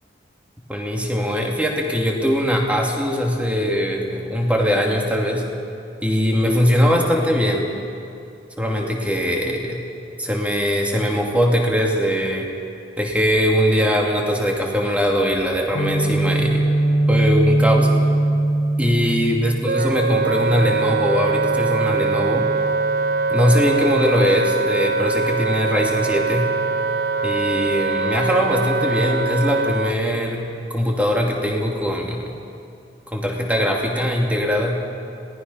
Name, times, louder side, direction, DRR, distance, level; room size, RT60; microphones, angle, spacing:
voice 1, 0.7-5.4 6.0-7.7 8.6-9.8 10.1-12.5 13.0-16.6 17.1-17.9 18.8-22.5 23.3-26.4 27.2-30.4 30.7-32.3 33.1-34.8, equal, 10° right, 0 dB, 2.6 m, -21 dB
Guitar, 15.7-23.6, right 2 dB, 90° left, 3.0 m, -22 dB
Wind instrument woodwind instrument, 19.6-29.9, right 4 dB, 55° right, 0.6 m, -22 dB
26.5 x 18.5 x 5.6 m, 2.5 s
head